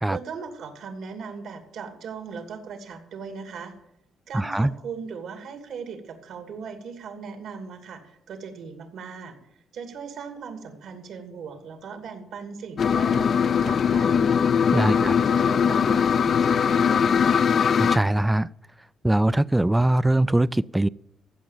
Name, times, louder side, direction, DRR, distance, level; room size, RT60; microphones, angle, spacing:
voice 1, 0.1-3.7 4.3-9.4 9.7-14.3 14.7-17.5, right 5 dB, 75° right, 2.7 m, -38 dB
voice 2, 4.3-4.7 14.7-15.1 17.7-18.5 19.0-20.9, right 1 dB, 10° right, 0.4 m, -22 dB
sound 1, 12.8-18.0, left 7 dB, 55° left, 0.5 m, -21 dB
15.5 x 6.4 x 9.1 m
cardioid pair, 90°, 0 cm